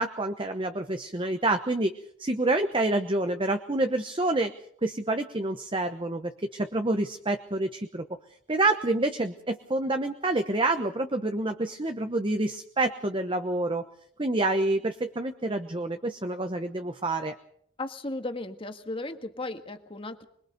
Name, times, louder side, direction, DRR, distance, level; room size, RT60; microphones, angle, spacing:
voice 1, 0.0-1.9 2.2-4.5 4.8-8.1 8.5-13.8 14.2-17.3, right 2 dB, 25° right, 7 dB, 1.0 m, -27 dB
voice 2, 17.8-20.3, left 2 dB, 30° left, 6 dB, 1.8 m, -35 dB
26.0 x 21.5 x 5.3 m, 0.65 s
head